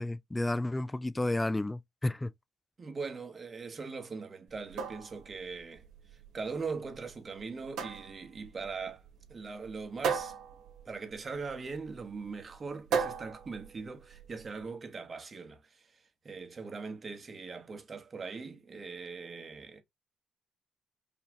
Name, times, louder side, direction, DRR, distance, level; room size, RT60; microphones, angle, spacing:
voice 1, 0.0-2.3, left 2 dB, 15° left, 0.4 m, -31 dB
voice 2, 2.8-5.8 6.3-9.0 9.3-10.3 10.8-19.8, right 4 dB, 35° right, 1.2 m, -41 dB
sound 1, 4.5-14.5, right 6 dB, 75° right, 1.5 m, -38 dB
5.5 x 2.3 x 3.0 m
cardioid pair, 80°, 0 cm